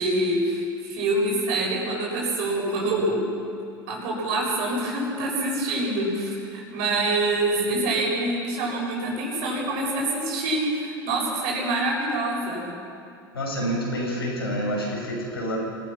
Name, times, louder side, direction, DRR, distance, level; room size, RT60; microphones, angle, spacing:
voice 1, 0.0-3.3 3.9-12.7, right 2 dB, 55° right, -2 dB, 7.3 m, -26 dB
voice 2, 13.3-15.6, equal, 85° left, -2 dB, 6.3 m, -28 dB
25.5 x 17.5 x 6.1 m, 2.5 s
figure-of-eight pair, 80°, 12 cm